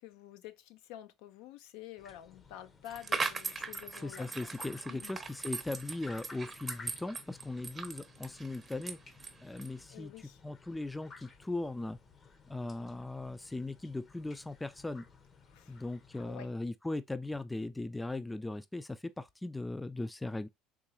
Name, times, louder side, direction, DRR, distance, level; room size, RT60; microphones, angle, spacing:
voice 1, 0.0-4.5 4.9-5.2 9.9-10.4 15.5-15.8 16.1-16.5, left 12 dB, 75° left, 0.4 m, -49 dB
sound 1, 2.0-16.4, left 4 dB, 35° left, 0.7 m, -56 dB
sound 2, 2.8-9.8, right 4 dB, 25° right, 0.6 m, -40 dB
voice 2, 4.0-9.0 9.4-10.1 10.4-12.0 12.5-15.0 15.7-20.5, left 2 dB, 10° left, 0.3 m, -38 dB
3.7 x 3.0 x 2.8 m
supercardioid pair, 90°, 0 cm